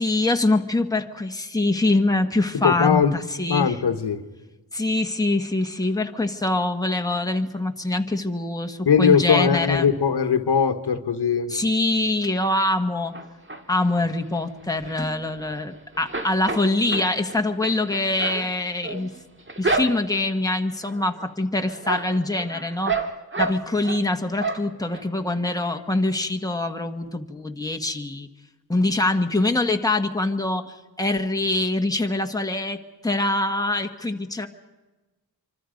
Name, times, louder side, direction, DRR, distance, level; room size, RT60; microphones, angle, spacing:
voice 1, 0.0-3.8 4.7-9.9 11.5-13.2 13.7-19.1 19.6-22.9 23.4-28.3 28.7-34.5, left 2 dB, 10° left, 4 dB, 1.5 m, -24 dB
voice 2, 2.6-3.1 3.5-4.2 8.8-11.5, left 7 dB, 85° left, 8 dB, 1.5 m, -20 dB
sound 1, 13.1-13.9 14.3-15.7 15.9-20.3 20.8-21.3 21.6-24.0 24.4-25.0 25.4-25.5 25.8-25.9, right 3 dB, 30° right, 2.0 m, -30 dB
26.0 x 25.5 x 5.2 m, 1.2 s
wide cardioid pair, 95°, 39 cm